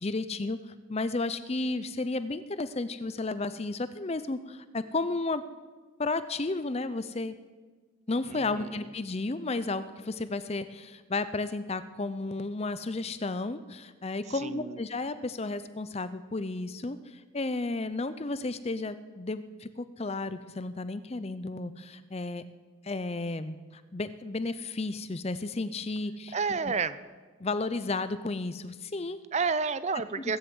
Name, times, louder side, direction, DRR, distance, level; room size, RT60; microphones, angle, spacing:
voice 1, 0.0-0.6 0.9-5.4 6.0-7.4 8.1-22.4 22.8-26.4 27.4-29.2, left 3 dB, 30° left, 12 dB, 0.6 m, -33 dB
voice 2, 8.3-8.8 14.3-14.8 26.3-27.0 29.3-30.4, right 5 dB, 30° right, 14 dB, 0.5 m, -30 dB
21.5 x 7.9 x 7.9 m, 1.4 s
head